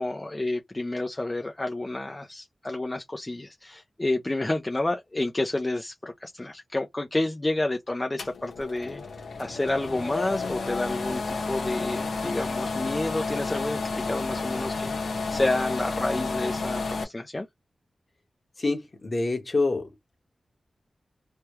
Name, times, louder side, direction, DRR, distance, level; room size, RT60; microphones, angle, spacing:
voice 1, 0.0-9.0 9.4-17.5, left 2 dB, 25° left, 0.5 m, -30 dB
sound 1, 8.2-17.0, left 4 dB, 90° left, 0.9 m, -31 dB
voice 2, 18.6-19.9, left 3 dB, 45° left, 1.3 m, -26 dB
3.2 x 2.2 x 3.0 m
cardioid pair, 60°, 0 cm